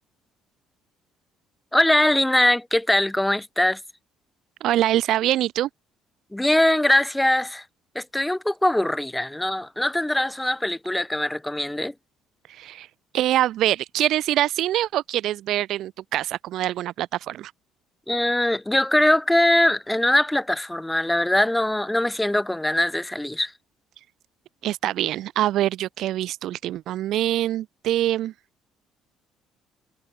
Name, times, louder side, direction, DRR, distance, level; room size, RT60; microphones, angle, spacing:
voice 1, 1.7-3.8 6.3-7.6 7.9-11.9 18.1-23.5, left 1 dB, 5° left, 3.1 m, -22 dB
voice 2, 4.6-5.7 12.5-12.9 13.1-17.5 24.6-28.3, right 13 dB, 60° right, 1.7 m, -24 dB
cardioid pair, 165°, 0 cm